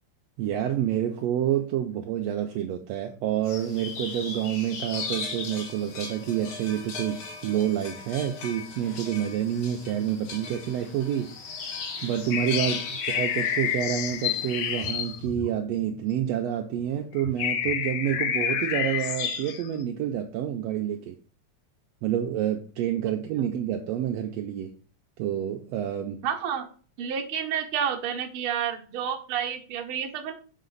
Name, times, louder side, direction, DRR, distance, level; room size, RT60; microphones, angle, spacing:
voice 1, 0.4-11.3 12.0-21.2 22.0-24.7 25.2-26.2, right 10 dB, 80° right, 1.6 m, -28 dB
sound 1, 3.4-15.1, left 4 dB, 55° left, 1.7 m, -39 dB
sound 2, 12.3-16.2 16.8-16.9 17.2-19.7, left 9 dB, 75° left, 1.5 m, -29 dB
voice 2, 26.2-26.7 27.0-30.3, right 8 dB, 65° right, 1.5 m, -30 dB
7.3 x 4.1 x 3.9 m
omnidirectional pair, 3.4 m